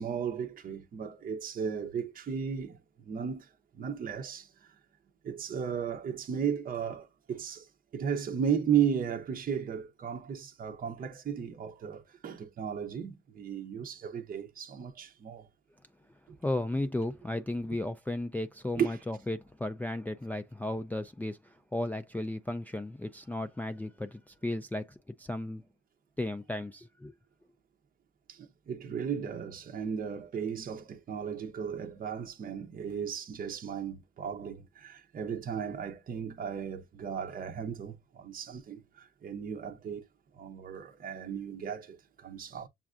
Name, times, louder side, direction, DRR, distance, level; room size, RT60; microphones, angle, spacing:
voice 1, 0.0-4.8 5.2-15.5 16.3-16.4 18.8-19.0 28.3-40.0 40.3-42.7, right 7 dB, 45° right, 0.7 m, -35 dB
voice 2, 16.4-25.6 26.2-27.1, left 1 dB, 10° left, 0.3 m, -35 dB
7.0 x 2.4 x 2.4 m
cardioid pair, 90°, 20 cm